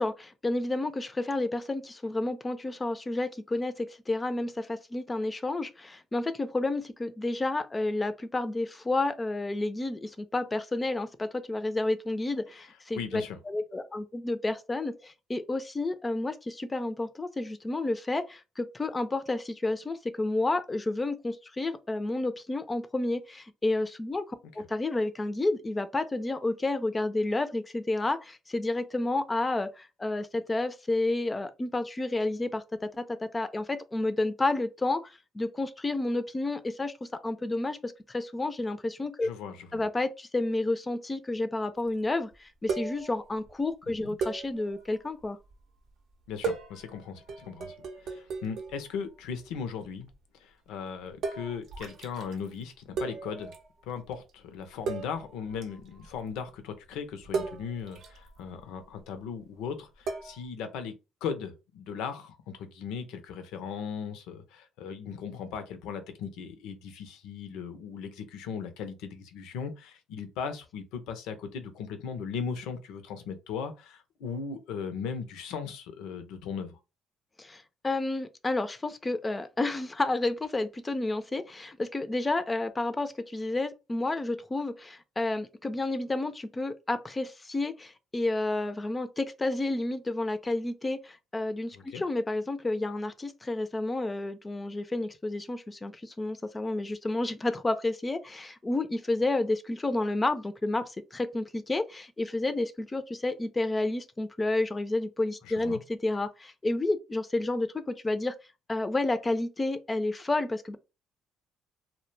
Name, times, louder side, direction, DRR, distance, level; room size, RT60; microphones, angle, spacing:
voice 1, 0.0-39.3 39.7-45.4 77.4-108.3 108.7-110.8, left 2 dB, 25° left, 0.4 m, -30 dB
voice 2, 12.9-13.4 39.2-39.8 44.0-44.1 46.3-47.7 48.0-50.1 50.4-53.5 53.8-61.0 61.2-76.8 91.7-92.0 105.4-105.8, left 6 dB, 80° left, 0.5 m, -38 dB
sound 1, 41.9-42.0 42.3-42.4 42.7-43.5 44.2-45.6 46.3-49.0 49.2-49.7 50.0-50.1 51.2-52.5 53.0-53.7 53.9-54.1 54.6-54.7 54.9-56.4 57.2-58.9 60.1-60.5, right 4 dB, 65° right, 0.5 m, -37 dB
2.1 x 2.1 x 3.1 m
hypercardioid pair, 60°, 0 cm